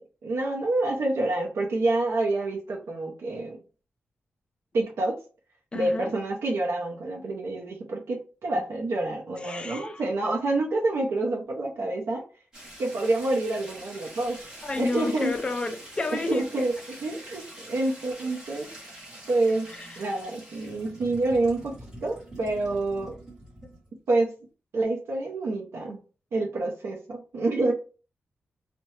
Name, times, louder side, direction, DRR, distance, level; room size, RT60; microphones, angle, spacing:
voice 1, 0.2-3.6 4.7-5.2 5.7-12.2 12.8-15.3 16.1-16.7 17.0-18.7 19.3-19.7 20.0-21.7 22.0-23.1 24.1-24.3 24.7-26.0 26.3-27.7, right 2 dB, 75° right, 0.6 m, -27 dB
voice 2, 5.7-6.1 9.3-10.0 14.6-16.4 19.7-20.0, left 3 dB, 25° left, 0.3 m, -31 dB
sound 1, 12.5-23.9, right 1 dB, 20° right, 1.2 m, -45 dB
2.7 x 2.1 x 3.1 m
wide cardioid pair, 150°, 4 cm